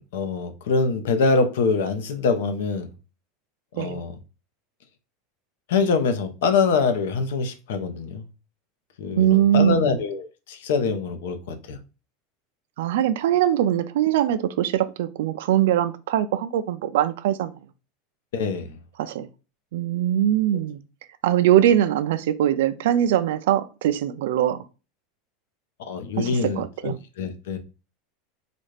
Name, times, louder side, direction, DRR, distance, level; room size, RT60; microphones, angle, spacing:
voice 1, 0.0-2.9 3.7-4.1 5.7-8.2 9.0-11.8 18.3-18.8 25.9-27.6, left 4 dB, 80° left, 0.8 m, -24 dB
voice 2, 9.2-10.0 12.8-17.5 19.0-19.3 19.7-20.8 21.2-24.6 26.2-27.0, right 11 dB, 75° right, 0.3 m, -22 dB
4.1 x 2.4 x 3.2 m
supercardioid pair, 160°, 0 cm